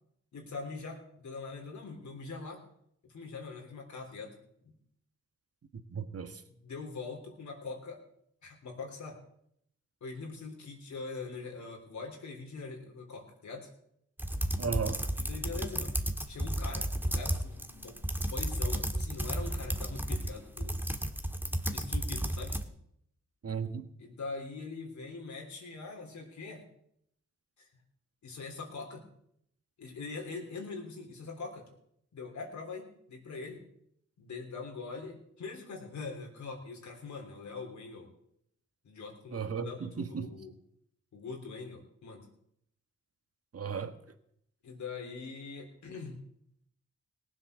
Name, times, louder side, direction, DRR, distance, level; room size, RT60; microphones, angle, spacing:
voice 1, 0.3-2.6 3.0-4.3 4.6-4.7 6.6-8.0 8.4-9.2 10.0-13.7 15.2-15.9 16.3-20.8 21.7-22.6 24.0-26.6 27.6-27.7 28.2-29.0 29.8-31.6 32.1-33.6 34.2-38.1 38.8-40.5 41.1-42.3 44.6-46.2, left 4 dB, 80° left, 3.5 m, -43 dB
voice 2, 5.9-6.4 14.6-15.0 23.4-23.9 39.3-40.3 43.5-44.0, right 6 dB, 55° right, 1.5 m, -35 dB
sound 1, 14.2-22.6, right 1 dB, 5° right, 1.5 m, -33 dB
18.0 x 7.9 x 6.7 m
cardioid pair, 65°, 29 cm